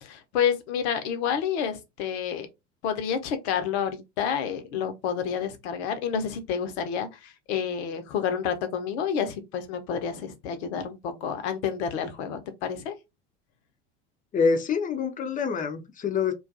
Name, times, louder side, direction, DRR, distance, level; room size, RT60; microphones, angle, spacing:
voice 1, 0.0-2.5 2.8-12.9, left 7 dB, 65° left, 0.7 m, -29 dB
voice 2, 14.3-16.3, left 5 dB, 25° left, 0.5 m, -26 dB
2.5 x 2.3 x 2.5 m
hypercardioid pair, 75°, 36 cm